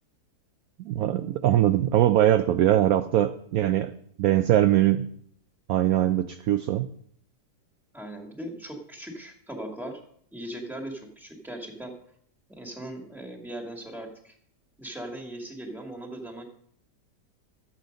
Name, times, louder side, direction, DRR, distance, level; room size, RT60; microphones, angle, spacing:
voice 1, 0.8-5.1 5.7-6.9, right 12 dB, 70° right, 10 dB, 0.9 m, -22 dB
voice 2, 7.9-10.0 10.3-11.9 12.5-14.4 14.8-16.4, right 1 dB, ahead, 2 dB, 1.9 m, -39 dB
13.0 x 8.2 x 5.2 m, 0.67 s
omnidirectional pair, 1.9 m